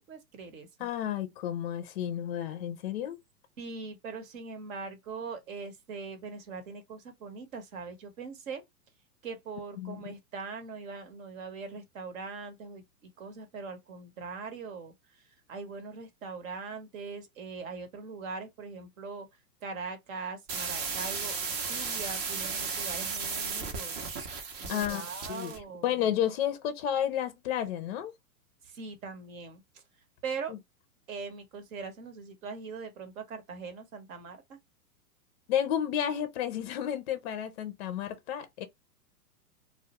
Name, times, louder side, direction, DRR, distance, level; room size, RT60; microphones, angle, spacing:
voice 1, 0.1-0.9 3.6-8.6 9.2-19.3 19.6-24.0 24.6-26.1 28.6-29.8 30.2-30.5 31.1-34.6, right 4 dB, 55° right, 1.0 m, -41 dB
voice 2, 0.8-3.2 9.8-10.0 24.7-25.0 25.3-25.5 25.8-28.1 30.5-30.6 35.5-38.7, left 10 dB, 45° left, 0.4 m, -31 dB
sound 1, 20.5-25.6, right 5 dB, 25° right, 0.5 m, -35 dB
2.2 x 2.1 x 2.8 m
hypercardioid pair, 125°, 47 cm